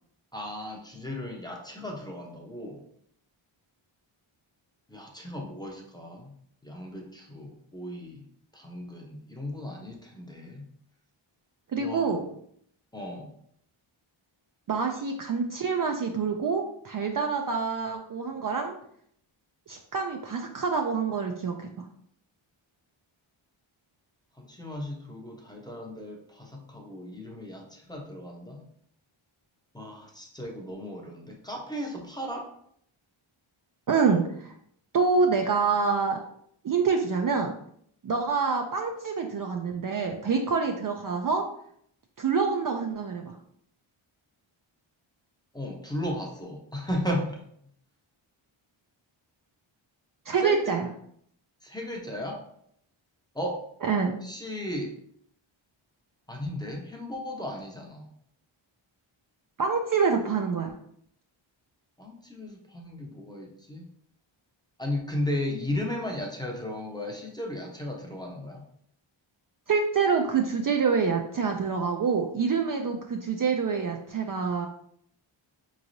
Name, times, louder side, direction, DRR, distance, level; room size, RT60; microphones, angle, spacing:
voice 1, 0.3-2.8 4.9-6.3 6.6-8.2 8.5-10.6 11.8-12.1 12.9-13.3 24.4-28.6 29.7-32.5 45.5-47.4 50.4-50.6 51.6-52.4 53.3-53.7 54.2-54.9 56.3-58.0 62.0-63.9 64.8-68.6, left 1 dB, 10° left, 0 dB, 0.6 m, -35 dB
voice 2, 11.7-12.3 14.7-18.8 19.7-21.7 33.9-34.5 34.9-36.2 36.6-37.5 38.0-41.5 42.2-43.4 50.3-50.9 53.8-54.1 59.6-60.7 69.7-74.7, right 5 dB, 45° right, 2 dB, 0.4 m, -26 dB
4.7 x 3.1 x 2.6 m, 0.67 s
wide cardioid pair, 110°, 49 cm